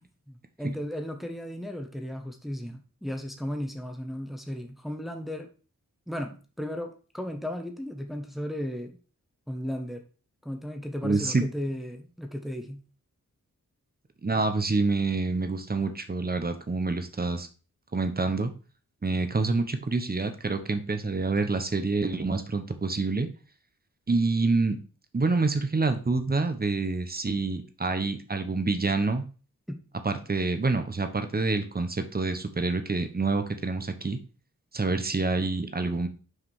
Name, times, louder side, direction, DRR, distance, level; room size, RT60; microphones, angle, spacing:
voice 1, 0.3-5.5 6.1-9.0 9.5-10.0 10.4-12.8 29.7-29.8, equal, ahead, 3 dB, 1.2 m, -35 dB
voice 2, 11.0-11.4 14.2-17.5 17.9-18.5 19.0-23.3 24.1-24.8 25.1-29.2 30.0-34.2 34.7-36.1, right 3 dB, 30° right, 8 dB, 1.0 m, -27 dB
6.1 x 5.0 x 4.8 m, 0.36 s
wide cardioid pair, 85°, 33 cm